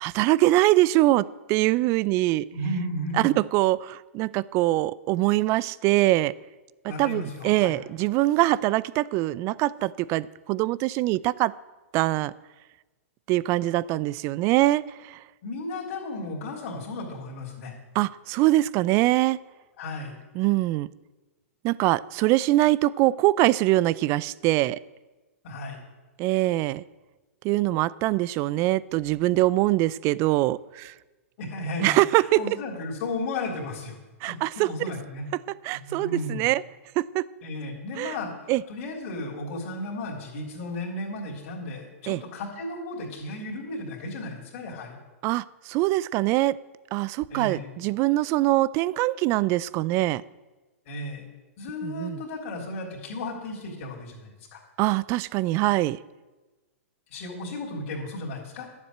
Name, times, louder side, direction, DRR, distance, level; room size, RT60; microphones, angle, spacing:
voice 1, 0.0-2.5 3.2-6.3 7.0-11.5 11.9-12.3 13.3-15.2 17.9-19.4 20.4-20.9 21.6-24.8 26.2-26.8 27.4-30.9 31.8-32.4 34.2-34.7 35.6-36.6 37.0-37.3 38.0-38.2 38.5-38.6 42.1-42.2 45.2-46.6 46.9-50.2 51.8-52.2 54.8-56.0, right 17 dB, 35° right, 20 dB, 0.4 m, -23 dB
voice 2, 2.5-3.3 6.9-7.8 15.4-17.7 19.8-20.2 25.4-25.8 31.4-34.0 34.3-35.3 35.8-36.5 37.4-45.0 47.3-47.7 50.9-51.2 51.6-54.6 57.1-58.7, left 2 dB, 50° left, -3 dB, 3.4 m, -34 dB
12.0 x 7.4 x 7.9 m, 1.2 s
hypercardioid pair, 120°, 8 cm